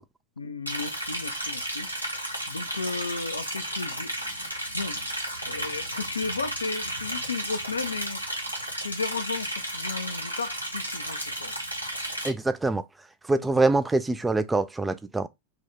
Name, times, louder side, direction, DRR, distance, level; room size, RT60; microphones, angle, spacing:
voice 1, 0.4-1.9 2.5-4.1 4.5-5.0 5.5-8.2 8.8-11.5, left 4 dB, 75° left, 0.4 m, -34 dB
Liquid, 0.7-12.3, right 1 dB, 90° right, 0.9 m, -33 dB
voice 2, 12.2-12.8 13.3-15.3, right 2 dB, 10° right, 0.3 m, -24 dB
2.8 x 2.7 x 3.4 m
figure-of-eight pair, 90°, 0 cm